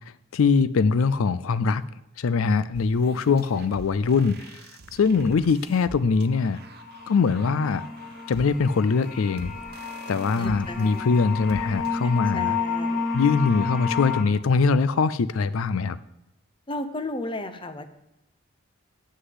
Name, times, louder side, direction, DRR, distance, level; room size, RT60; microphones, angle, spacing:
voice 1, 0.3-1.8 2.2-4.6 4.9-6.6 7.1-7.8 8.3-9.5 10.1-12.6 13.1-16.0, left 5 dB, 90° left, 16 dB, 0.4 m, -22 dB
sound 1, 2.7-12.1, right 3 dB, 50° right, 0.6 m, -45 dB
sound 2, 6.2-6.3 6.6-14.2, left 5 dB, 45° left, 1.3 m, -31 dB
voice 2, 10.4-11.2 12.0-13.1 16.7-17.9, left 2 dB, 25° left, 9 dB, 0.7 m, -35 dB
7.6 x 6.5 x 7.9 m, 0.88 s
head